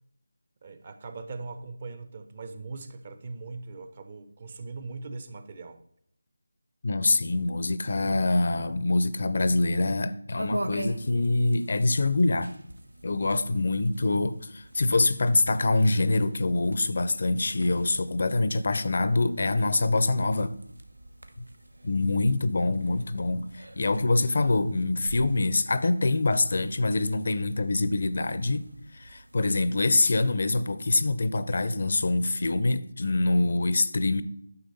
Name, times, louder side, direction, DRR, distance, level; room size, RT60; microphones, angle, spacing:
voice 1, 0.6-5.8, right 3 dB, 40° right, 0.7 m, -40 dB
voice 2, 6.8-12.5 13.0-20.5 21.8-28.7 28.9-34.2, left 2 dB, 55° left, 0.6 m, -25 dB
sound 1, 10.4-30.0, right 1 dB, 90° right, 1.0 m, -44 dB
9.7 x 6.3 x 4.1 m
figure-of-eight pair, 160°, 0 cm